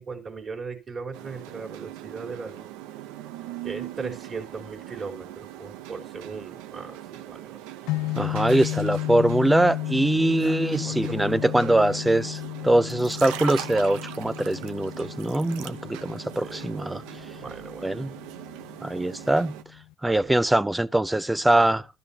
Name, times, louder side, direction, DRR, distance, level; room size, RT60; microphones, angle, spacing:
voice 1, 0.0-2.7 3.6-7.6 10.2-12.0 16.4-17.0 17.3-18.2 20.0-20.4, right 4 dB, 40° right, 4.0 m, -38 dB
sound 1, 1.1-19.6, right 13 dB, 85° right, 0.7 m, -40 dB
sound 2, 7.9-19.9, left 19 dB, 75° left, 0.5 m, -34 dB
voice 2, 8.2-17.0 17.8-18.1 18.8-19.5 20.0-21.9, right 1 dB, 10° right, 0.5 m, -23 dB
12.5 x 12.5 x 2.8 m
supercardioid pair, 80°, 0 cm